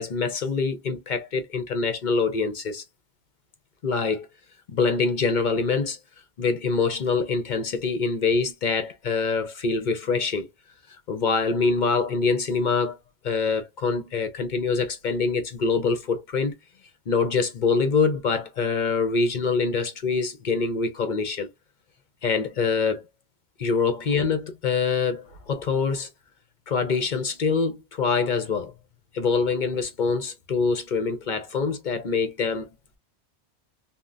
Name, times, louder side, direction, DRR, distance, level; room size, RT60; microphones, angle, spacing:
voice 1, 0.0-2.8 3.8-4.3 4.7-6.0 6.4-10.5 10.9-13.0 13.2-16.5 17.1-21.5 22.2-23.0 23.6-26.1 26.7-28.7 29.1-32.7, left 4 dB, 50° left, 0.7 m, -25 dB
3.5 x 2.2 x 2.5 m
omnidirectional pair, 1.1 m